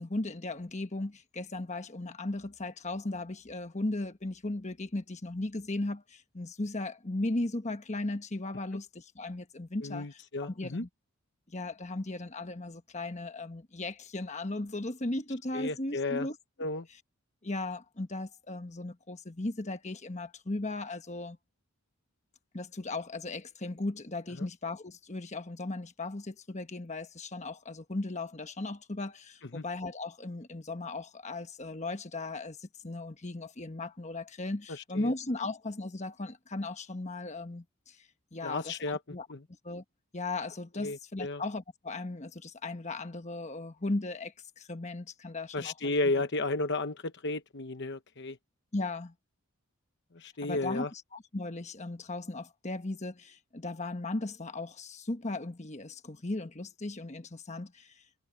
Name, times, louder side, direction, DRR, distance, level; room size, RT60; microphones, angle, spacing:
voice 1, 0.0-10.9 11.5-16.4 17.4-21.4 22.5-39.3 39.6-39.8 40.1-45.9 48.7-49.1 50.4-57.9, left 2 dB, 30° left, 1.2 m, -37 dB
voice 2, 9.8-10.9 15.5-16.3 16.6-16.9 24.4-24.5 29.5-29.6 34.9-35.1 38.4-39.4 40.8-41.4 45.5-48.4 50.1-50.9, left 2 dB, 50° left, 1.0 m, -33 dB
head